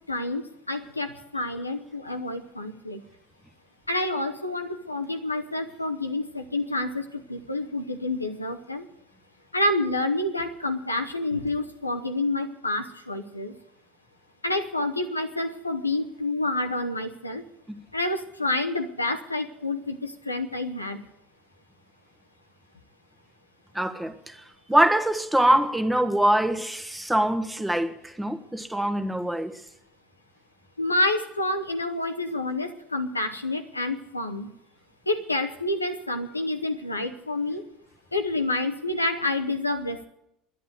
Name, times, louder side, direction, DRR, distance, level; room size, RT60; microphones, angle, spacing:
voice 1, 0.1-3.0 3.9-8.9 9.5-13.5 14.4-17.4 17.9-21.1 30.8-34.5 35.1-37.6 38.1-40.0, left 2 dB, 90° left, 6 dB, 0.8 m, -28 dB
voice 2, 23.7-29.6, right 1 dB, 5° right, 7 dB, 1.3 m, -24 dB
11.0 x 10.0 x 9.5 m, 0.79 s
figure-of-eight pair, 65°, 0 cm